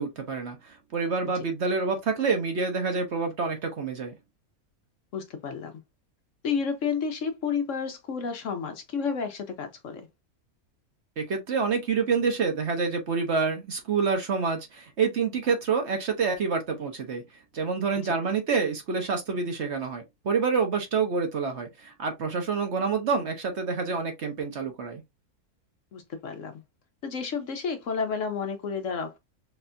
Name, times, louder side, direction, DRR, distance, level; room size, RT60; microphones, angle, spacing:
voice 1, 0.0-4.1 11.2-17.2 17.5-25.0, right 5 dB, 55° right, 1.0 m, -27 dB
voice 2, 5.1-5.7 6.4-10.1 18.0-18.1 25.9-26.6 27.0-29.2, left 6 dB, 60° left, 1.0 m, -31 dB
4.2 x 3.3 x 2.5 m
omnidirectional pair, 1.6 m